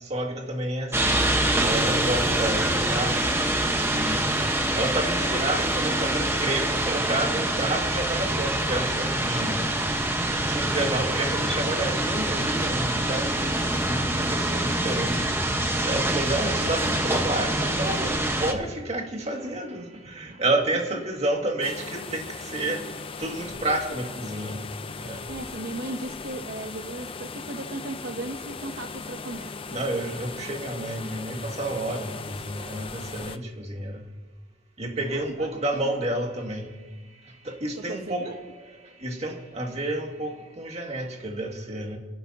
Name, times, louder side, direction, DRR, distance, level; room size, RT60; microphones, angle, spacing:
voice 1, 0.1-1.2 1.6-3.2 3.9-4.4 4.7-9.7 10.2-13.4 13.8-15.2 15.8-22.8 23.2-24.6 25.0-25.2 29.7-34.0 34.8-36.7 37.4-38.3 39.0-42.0, right 1 dB, 35° right, 1 dB, 2.1 m, -30 dB
sound 1, 0.9-18.5, right 1 dB, 15° right, 1.2 m, -25 dB
sound 2, 21.6-33.4, left 4 dB, 30° left, 0.5 m, -38 dB
voice 2, 25.3-29.5 35.0-35.5 35.8-35.9 37.8-38.4, right 2 dB, 55° right, 4 dB, 0.8 m, -36 dB
30.0 x 11.5 x 2.8 m, 1.3 s
head